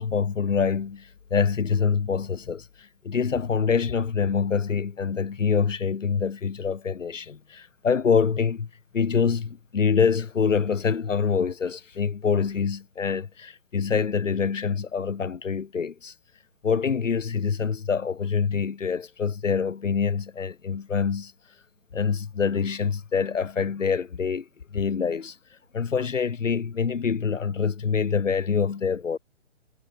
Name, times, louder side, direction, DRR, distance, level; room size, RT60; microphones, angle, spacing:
voice 1, 0.0-8.7 8.9-16.1 16.6-21.3 21.9-24.5 24.7-25.4 25.7-29.2, left 6 dB, 85° left, 2.3 m, -25 dB
hypercardioid pair, 170°, 37 cm